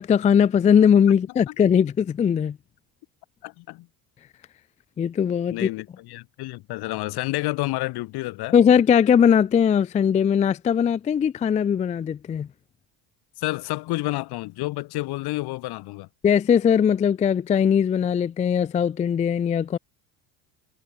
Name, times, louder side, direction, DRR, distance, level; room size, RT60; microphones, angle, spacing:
voice 1, 0.0-2.6 5.0-5.7 8.5-12.5 16.2-19.8, left 8 dB, 20° left, 0.3 m, -20 dB
voice 2, 3.4-3.9 5.5-8.6 13.4-16.1, left 20 dB, 70° left, 5.2 m, -29 dB
supercardioid pair, 95°, 39 cm